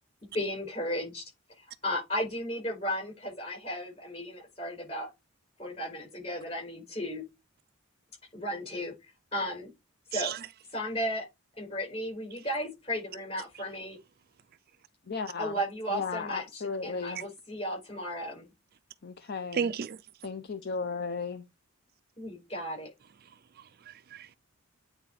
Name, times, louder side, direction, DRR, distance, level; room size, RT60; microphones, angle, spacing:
voice 1, 0.3-1.3 1.6-5.1 5.6-7.2 8.3-8.9 9.3-9.7 10.1-10.3 10.7-11.3 11.6-14.0 15.4-18.5 22.2-22.9, equal, 30° left, 5.2 m, -34 dB
voice 2, 10.1-10.5 19.5-20.0 23.6-24.3, right 7 dB, 45° right, 0.4 m, -34 dB
voice 3, 15.1-15.6 15.9-17.2 19.0-19.6 20.2-21.4, left 4 dB, 45° left, 0.6 m, -35 dB
9.1 x 3.9 x 4.0 m
head